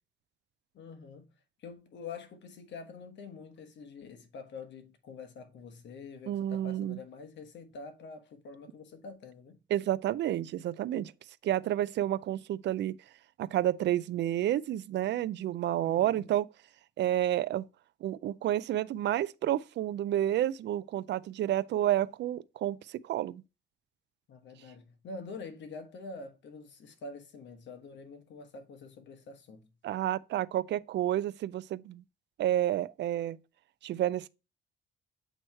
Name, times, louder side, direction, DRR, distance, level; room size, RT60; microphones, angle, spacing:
voice 1, 0.7-1.3 1.6-9.6 15.9-16.3 24.3-29.7, left 4 dB, 65° left, 1.2 m, -46 dB
voice 2, 6.3-7.0 9.7-11.1 11.4-13.0 13.4-16.5 17.0-17.7 18.0-23.4 29.8-32.0 32.4-33.4 33.8-34.3, right 12 dB, 60° right, 0.4 m, -30 dB
7.9 x 3.0 x 4.4 m
cardioid pair, 90°, 20 cm